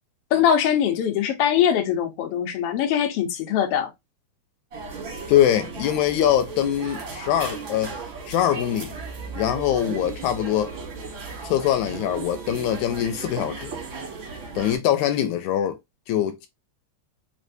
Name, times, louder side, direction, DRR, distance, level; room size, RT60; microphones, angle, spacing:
voice 1, 0.3-3.9, left 9 dB, 65° left, 1.6 m, -22 dB
sound 1, 4.7-14.8, right 4 dB, 45° right, 2.0 m, -36 dB
voice 2, 5.3-7.9 8.3-9.0 9.4-10.7 11.4-13.8 14.6-15.8 16.1-16.5, left 11 dB, 85° left, 2.0 m, -23 dB
4.4 x 3.2 x 2.6 m
omnidirectional pair, 3.4 m